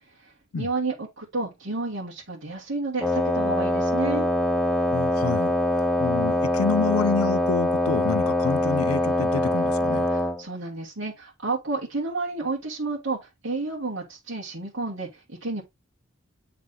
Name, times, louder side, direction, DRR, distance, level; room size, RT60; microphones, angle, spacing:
voice 1, 0.1-4.3 10.1-15.6, right 3 dB, 65° right, 1.4 m, -31 dB
Wind instrument woodwind instrument, 3.0-10.4, left 1 dB, 5° left, 0.4 m, -23 dB
voice 2, 4.9-10.1, left 5 dB, 90° left, 0.5 m, -28 dB
7.7 x 3.3 x 3.7 m
head